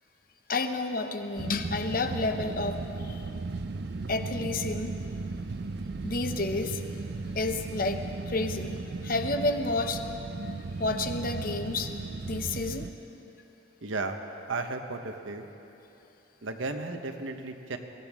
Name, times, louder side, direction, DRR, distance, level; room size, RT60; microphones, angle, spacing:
voice 1, 0.5-3.2 4.1-4.9 6.0-6.8 7.3-10.1 10.4-10.5 10.8-11.9 12.2-12.9, left 2 dB, 45° left, 7 dB, 0.8 m, -30 dB
sound 1, 1.4-12.9, right 3 dB, 55° right, 0.5 m, -36 dB
voice 2, 13.8-14.2 14.5-15.5 16.4-17.8, right 3 dB, 85° right, 5 dB, 1.1 m, -34 dB
22.0 x 16.0 x 3.6 m, 2.9 s
head